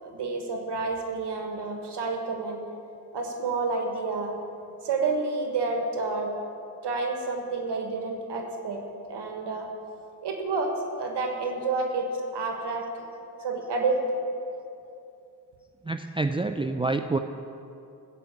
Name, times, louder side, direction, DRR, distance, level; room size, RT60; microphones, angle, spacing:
voice 1, 0.0-2.6 3.1-4.3 4.8-6.3 6.8-9.7 10.2-12.1 12.3-12.8 13.4-14.0, right 3 dB, 75° right, 3 dB, 1.4 m, -29 dB
voice 2, 15.9-17.2, right 3 dB, 15° right, 7 dB, 0.5 m, -27 dB
15.0 x 5.4 x 7.2 m, 2.7 s
supercardioid pair, 40°, 41 cm